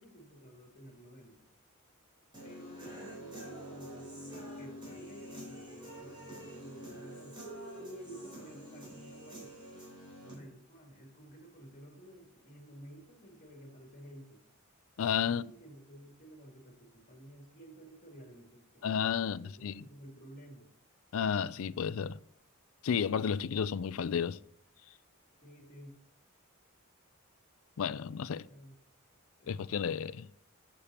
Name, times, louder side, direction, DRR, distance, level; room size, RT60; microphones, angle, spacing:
voice 1, 0.0-1.4 2.4-7.4 7.7-9.5 10.2-14.4 15.2-18.9 19.2-20.7 25.4-26.0 28.5-28.7 29.4-29.5, right 1 dB, 40° left, 2.6 m, -53 dB
Human voice / Guitar, 2.3-10.3, equal, 25° right, 3.7 m, -46 dB
voice 2, 15.0-15.4 18.8-19.8 21.1-22.2 22.8-24.4 27.8-28.5 29.5-30.3, left 7 dB, 65° left, 0.4 m, -32 dB
13.0 x 7.0 x 2.9 m
head